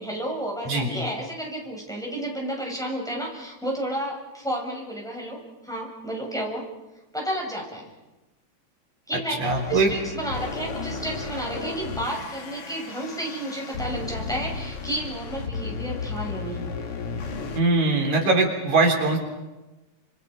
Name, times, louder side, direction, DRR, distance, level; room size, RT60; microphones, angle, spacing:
voice 1, 0.0-6.7 7.1-7.9 9.1-16.7, right 1 dB, ahead, -2 dB, 6.6 m, -32 dB
voice 2, 9.4-9.9 17.5-19.2, right 3 dB, 85° right, 2 dB, 5.0 m, -21 dB
sound 1, 9.5-17.6, left 4 dB, 55° left, 2.6 m, -34 dB
29.5 x 28.0 x 5.4 m, 1.1 s
omnidirectional pair, 3.3 m